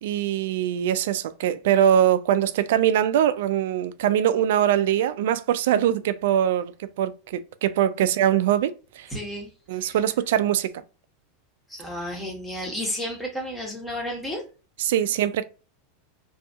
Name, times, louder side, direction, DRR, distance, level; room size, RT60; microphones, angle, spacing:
voice 1, 0.0-9.1 9.7-10.7 14.8-15.4, right 10 dB, 75° right, 0.3 m, -22 dB
voice 2, 9.1-10.0 11.7-14.4, equal, 10° left, 1.2 m, -32 dB
2.7 x 2.7 x 2.3 m
supercardioid pair, 120°, 0 cm